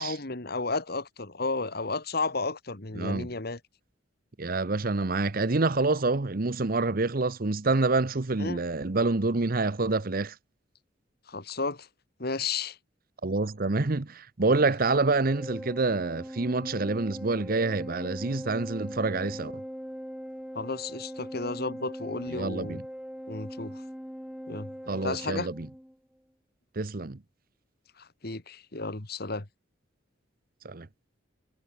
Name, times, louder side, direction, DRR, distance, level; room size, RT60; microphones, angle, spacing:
voice 1, 0.0-3.6 8.4-8.6 11.3-11.9 12.2-12.8 20.5-22.8 23.3-23.8 24.5-24.7 25.0-25.5 28.0-29.5, left 3 dB, 55° left, 2.0 m, -33 dB
voice 2, 3.0-3.3 4.4-10.3 13.2-19.6 22.3-22.8 24.9-25.7 26.8-27.2 30.6-30.9, right 3 dB, 50° right, 0.9 m, -27 dB
Organ, 15.2-26.0, equal, 5° right, 1.7 m, -40 dB
head